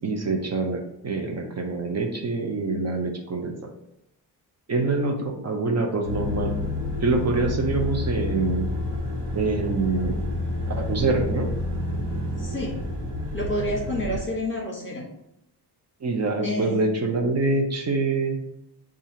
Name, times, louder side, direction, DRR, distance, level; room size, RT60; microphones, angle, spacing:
voice 1, 0.0-3.7 4.7-6.5 7.0-8.7 9.3-10.2 10.8-11.5 16.0-18.4, right 3 dB, 40° right, 3 dB, 0.5 m, -25 dB
sound 1, 6.0-14.2, left 1 dB, 80° right, 1.2 m, -29 dB
voice 2, 12.4-12.8 13.3-15.1 16.4-16.9, left 1 dB, 30° left, -2 dB, 1.1 m, -29 dB
7.1 x 2.4 x 2.7 m, 0.81 s
wide cardioid pair, 155°, 41 cm